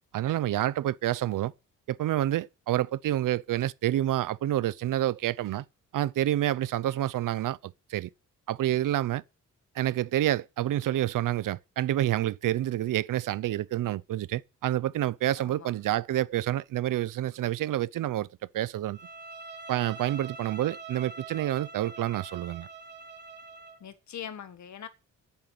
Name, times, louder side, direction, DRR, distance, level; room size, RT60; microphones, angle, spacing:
voice 1, 0.1-1.5 1.9-5.6 5.9-8.1 8.5-9.2 9.7-18.3 18.5-19.0 19.7-22.7, right 13 dB, 80° right, 0.7 m, -28 dB
voice 2, 15.4-15.7 23.8-24.9, left 9 dB, 60° left, 1.7 m, -42 dB
Bowed string instrument, 18.9-23.8, right 5 dB, 35° right, 2.5 m, -44 dB
10.5 x 9.1 x 9.5 m
wide cardioid pair, 140°, 32 cm